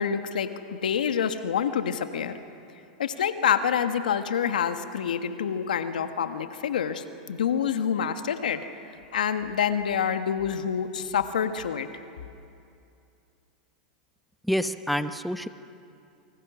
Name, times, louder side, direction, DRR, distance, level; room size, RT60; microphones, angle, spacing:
voice 1, 0.0-2.3 3.0-8.6 9.1-11.9, left 8 dB, 85° left, 8 dB, 1.5 m, -27 dB
voice 2, 14.5-15.5, equal, ahead, 10 dB, 0.9 m, -27 dB
28.5 x 25.0 x 6.2 m, 2.6 s
hypercardioid pair, 105°, 4 cm